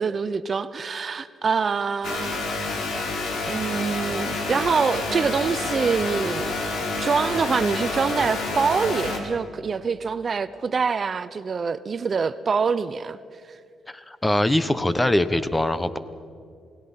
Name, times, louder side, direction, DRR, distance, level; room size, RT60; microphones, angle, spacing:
voice 1, 0.0-2.4 3.5-6.5 7.0-13.2 13.5-13.6, right 5 dB, 40° right, 14 dB, 0.6 m, -25 dB
sound 1, 2.0-9.2, left 3 dB, 70° left, 3.5 m, -28 dB
voice 2, 13.9-16.0, left 1 dB, 15° left, 13 dB, 1.0 m, -22 dB
28.5 x 17.5 x 5.7 m, 2.3 s
cardioid pair, 90°, 0 cm